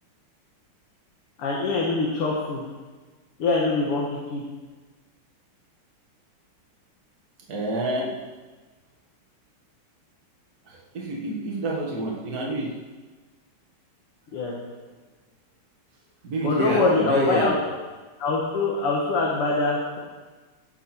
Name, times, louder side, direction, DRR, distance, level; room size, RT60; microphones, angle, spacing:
voice 1, 1.4-2.6 3.4-4.4 14.3-14.5 16.4-17.5 18.2-20.0, left 3 dB, 85° left, -3 dB, 2.5 m, -24 dB
voice 2, 7.5-8.1 10.7-12.7 16.2-17.5, right 1 dB, 45° right, -2 dB, 2.2 m, -28 dB
16.5 x 7.2 x 4.5 m, 1.3 s
omnidirectional pair, 2.4 m